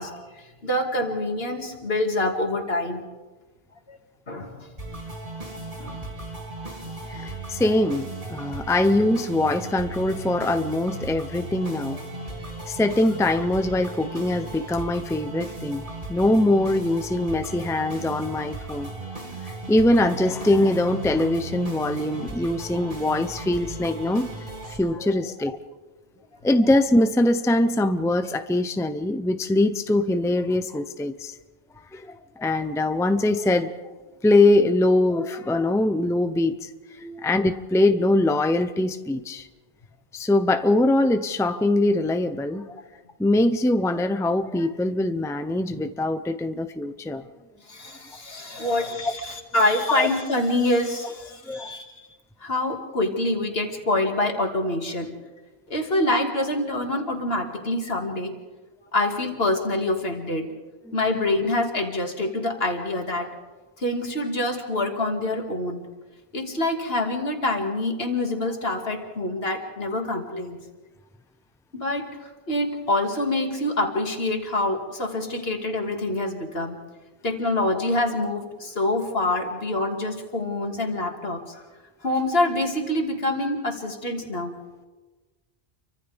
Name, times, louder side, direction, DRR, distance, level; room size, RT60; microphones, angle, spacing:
voice 1, 0.0-3.0 3.9-4.0 4.3-4.7 5.8-6.0 8.6-8.7 25.0-25.1 47.7-52.1 52.4-55.1 55.7-58.4 58.9-60.5 60.9-63.3 63.8-65.9 66.3-70.6 71.7-76.8 77.2-81.6 82.0-84.6, left 2 dB, 70° left, 2 dB, 2.5 m, -26 dB
sound 1, 4.8-24.8, right 2 dB, 50° right, 3.6 m, -36 dB
voice 2, 7.1-12.0 12.6-18.9 19.7-24.3 24.7-25.6 26.4-31.3 31.9-33.8 34.2-36.7 37.0-39.5 40.1-42.8 43.2-47.3 48.8-48.9 49.9-50.1 51.5-51.7, left 2 dB, 5° left, 9 dB, 0.6 m, -22 dB
30.0 x 24.5 x 3.5 m, 1.3 s
omnidirectional pair, 1.0 m